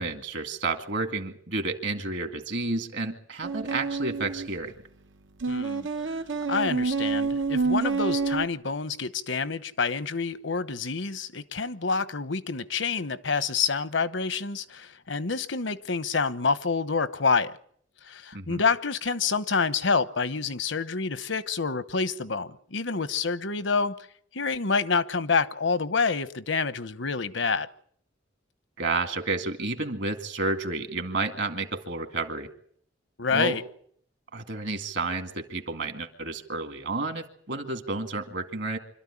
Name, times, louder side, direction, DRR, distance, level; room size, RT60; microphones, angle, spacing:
voice 1, 0.0-4.7 18.3-18.6 28.8-32.5 33.3-33.6 34.3-38.8, right 3 dB, 65° right, 2.2 m, -31 dB
sound 1, 3.4-4.5 5.4-8.5, right 4 dB, 90° right, 1.1 m, -28 dB
voice 2, 5.5-5.9 6.5-17.6 18.0-24.0 24.3-27.7 33.2-33.6, left 4 dB, 75° left, 1.0 m, -27 dB
26.0 x 13.0 x 9.9 m
head